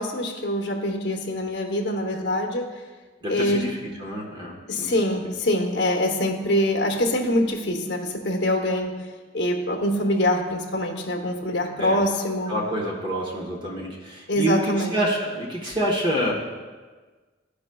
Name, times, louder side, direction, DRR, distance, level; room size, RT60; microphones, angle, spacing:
voice 1, 0.0-2.7 3.3-3.6 4.7-8.9 9.3-12.5 14.3-14.9, left 1 dB, 60° left, 1 dB, 0.8 m, -24 dB
voice 2, 3.2-4.9 11.8-12.0 12.5-16.3, right 1 dB, 25° right, -3 dB, 1.1 m, -27 dB
13.0 x 4.9 x 2.2 m, 1.4 s
head